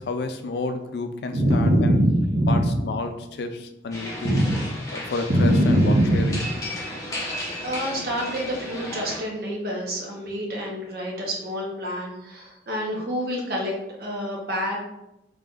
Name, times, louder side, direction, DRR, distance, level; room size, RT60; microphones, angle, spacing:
voice 1, 0.0-2.0 2.5-4.5 4.9-6.4, left 3 dB, 60° left, 7 dB, 0.4 m, -31 dB
voice 2, 1.3-2.8 4.2-4.5 5.3-6.4 7.6-13.7 14.0-14.8, equal, 55° right, -2 dB, 1.0 m, -24 dB
sound 1, 3.9-9.2, left 1 dB, 15° left, 0.7 m, -34 dB
3.8 x 3.4 x 2.4 m, 0.88 s
head